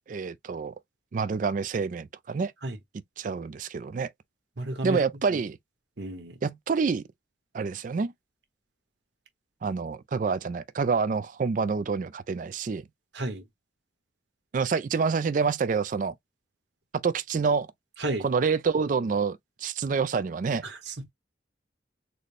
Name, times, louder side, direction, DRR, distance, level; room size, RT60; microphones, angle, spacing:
voice 1, 0.1-0.7 1.1-2.5 3.2-4.1 4.8-5.6 6.4-7.0 7.5-8.1 9.6-12.8 14.5-16.1 16.9-17.7 18.2-20.7, right 5 dB, 45° right, 0.3 m, -27 dB
voice 2, 4.6-5.0 6.0-6.4 13.1-13.4 18.0-18.2 20.6-21.1, right 2 dB, 65° right, 1.1 m, -32 dB
4.0 x 2.2 x 3.2 m
head